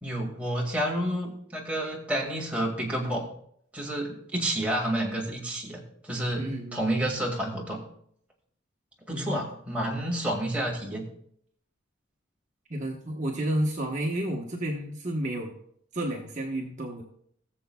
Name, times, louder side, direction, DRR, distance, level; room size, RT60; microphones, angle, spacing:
voice 1, 0.0-3.2 3.7-7.8 9.1-11.1, right 1 dB, 5° right, -2 dB, 2.0 m, -30 dB
voice 2, 6.3-6.9 9.1-9.5 12.7-15.5 15.9-17.0, right 1 dB, 40° right, 0 dB, 1.1 m, -31 dB
19.0 x 6.9 x 2.3 m, 0.65 s
head